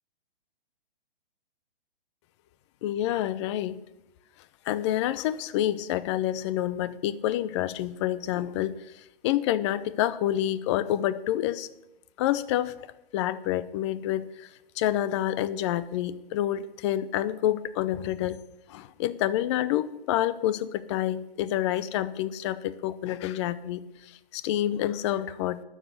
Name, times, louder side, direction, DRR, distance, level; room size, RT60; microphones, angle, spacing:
voice 1, 2.8-3.8 4.7-11.7 12.2-12.7 13.1-14.5 14.8-18.4 18.7-25.6, left 12 dB, 30° left, 16 dB, 0.6 m, -28 dB
12.5 x 7.2 x 8.1 m, 0.88 s
hypercardioid pair, 130°, 30 cm